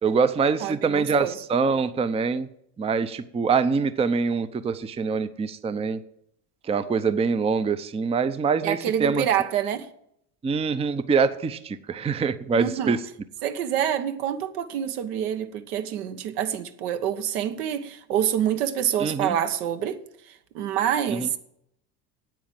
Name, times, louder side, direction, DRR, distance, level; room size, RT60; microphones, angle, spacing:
voice 1, 0.0-2.5 2.8-6.0 6.7-9.2 10.4-13.0 19.0-19.4 21.1-21.3, right 5 dB, 15° right, 0.6 m, -24 dB
voice 2, 0.6-1.3 8.6-9.9 12.5-13.0 13.4-20.0 20.5-21.4, right 10 dB, 70° right, 1.3 m, -27 dB
9.2 x 8.6 x 7.6 m
hypercardioid pair, 85°, 47 cm